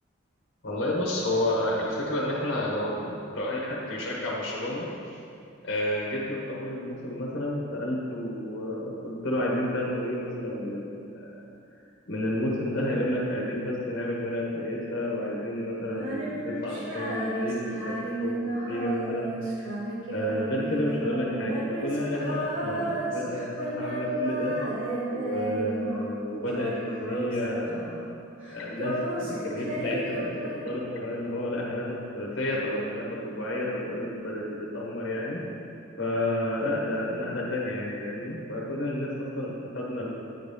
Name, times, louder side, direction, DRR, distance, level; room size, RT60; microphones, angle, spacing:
voice 1, 0.6-5.2 5.6-11.4 12.1-17.9 18.2-19.3 20.1-24.5 25.1-28.1 28.5-35.4 36.0-40.1, left 1 dB, 55° left, -4 dB, 1.2 m, -30 dB
Female singing, 15.9-26.2 26.5-28.1 28.4-31.1, right 1 dB, 70° right, 1.7 m, -33 dB
9.3 x 4.0 x 5.4 m, 2.5 s
head